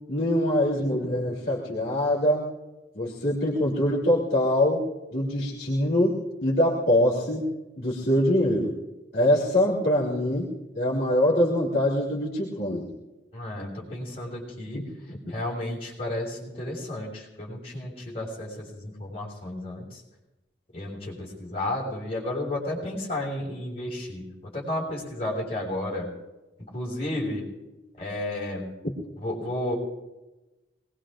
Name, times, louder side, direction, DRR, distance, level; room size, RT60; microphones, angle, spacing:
voice 1, 0.1-2.5 2.9-4.8 5.1-7.5 7.8-8.7 9.1-10.5 10.7-12.9 14.7-15.2, left 1 dB, 60° left, -6 dB, 3.1 m, -24 dB
voice 2, 13.3-14.8 15.3-20.0 20.7-26.1 26.7-27.5 28.0-28.7 29.2-29.7, left 1 dB, 35° left, -5 dB, 5.9 m, -32 dB
25.0 x 20.5 x 2.6 m, 1.1 s
head